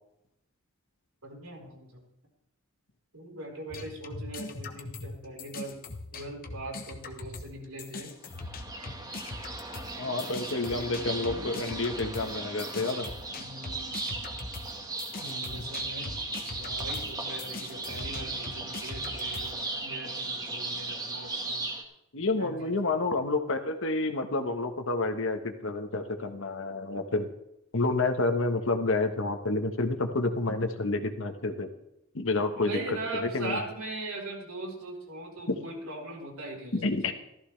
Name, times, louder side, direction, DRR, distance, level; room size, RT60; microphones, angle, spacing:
voice 1, 1.2-2.1 3.1-5.8 6.1-8.1 11.3-11.5 13.3-14.1 15.5-16.1 16.6-21.7 22.3-23.1 32.6-36.9, right 2 dB, 80° right, -1 dB, 4.4 m, -40 dB
sound 1, 3.7-7.5 7.8-19.5, left 3 dB, 40° left, 1.1 m, -41 dB
sound 2, 8.3-21.8, right 2 dB, 20° right, 1.6 m, -37 dB
voice 2, 10.0-13.1 15.2-15.7 22.1-27.3 27.7-31.7 32.1-32.8 33.2-33.6 35.5-35.6 36.7-37.1, left 2 dB, 65° left, 7 dB, 1.3 m, -29 dB
15.0 x 14.0 x 3.4 m, 0.82 s
head